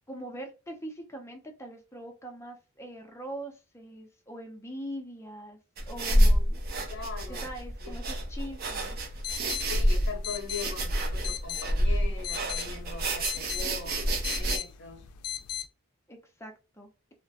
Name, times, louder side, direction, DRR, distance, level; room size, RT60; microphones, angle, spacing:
voice 1, 0.1-5.6 5.9-6.7 7.3-9.0 16.1-16.9, right 1 dB, 10° left, 0.4 m, -42 dB
sound 1, 5.8-14.6, equal, 45° right, 0.4 m, -28 dB
voice 2, 6.9-7.5 7.8-8.0 9.7-15.0, left 5 dB, 50° left, 0.7 m, -41 dB
sound 2, 8.9-15.7, left 10 dB, 85° left, 0.3 m, -39 dB
2.3 x 2.1 x 2.6 m
head